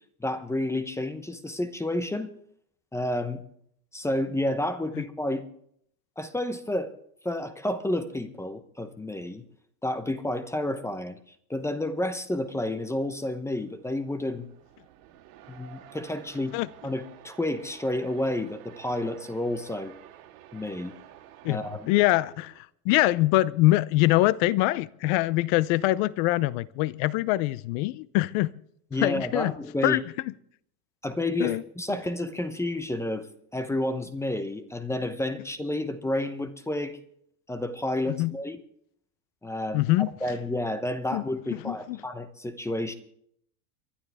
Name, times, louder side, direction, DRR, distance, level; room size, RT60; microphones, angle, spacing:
voice 1, 0.2-2.3 2.9-3.4 3.9-5.4 6.2-6.9 7.2-9.4 9.8-11.2 11.5-14.5 15.5-16.6 16.8-19.9 20.5-21.0 21.5-21.9 28.9-30.0 31.0-37.0 37.5-38.6 39.4-39.8 40.2-42.9, left 1 dB, 5° left, 0.8 m, -30 dB
sound 1, 12.2-22.6, right 12 dB, 70° right, 3.3 m, -52 dB
voice 2, 21.9-28.5 29.0-29.5 29.8-30.0 31.4-31.6 38.2-38.3 39.7-40.1 41.1-41.2 41.6-42.0, left 18 dB, 55° left, 0.7 m, -24 dB
30.0 x 11.5 x 3.5 m
supercardioid pair, 135°, 45 cm